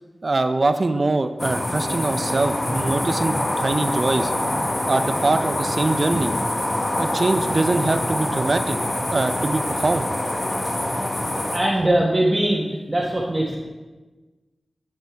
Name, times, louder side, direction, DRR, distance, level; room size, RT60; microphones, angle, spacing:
voice 1, 0.2-4.3 4.9-6.3 7.0-8.8 9.1-10.1, right 2 dB, 50° right, 9 dB, 0.4 m, -23 dB
sound 1, 1.4-11.6, left 1 dB, 45° left, 1.0 m, -25 dB
voice 2, 11.2-13.6, right 1 dB, 25° right, -4 dB, 1.0 m, -21 dB
7.7 x 5.3 x 3.4 m, 1.2 s
wide cardioid pair, 55°, 0 cm